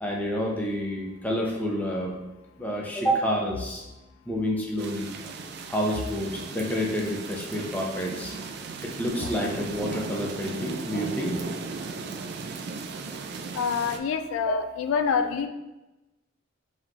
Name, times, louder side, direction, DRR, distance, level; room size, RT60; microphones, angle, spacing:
voice 1, 0.0-2.2 2.6-3.8 4.3-5.1 5.7-8.3 8.8-11.4 14.5-14.6, equal, 10° left, -2 dB, 0.6 m, -28 dB
sound 1, 4.8-14.0, right 4 dB, 55° right, 0.3 m, -37 dB
voice 2, 13.5-15.5, left 6 dB, 85° left, 9 dB, 0.3 m, -26 dB
5.5 x 3.0 x 2.4 m, 1.0 s
head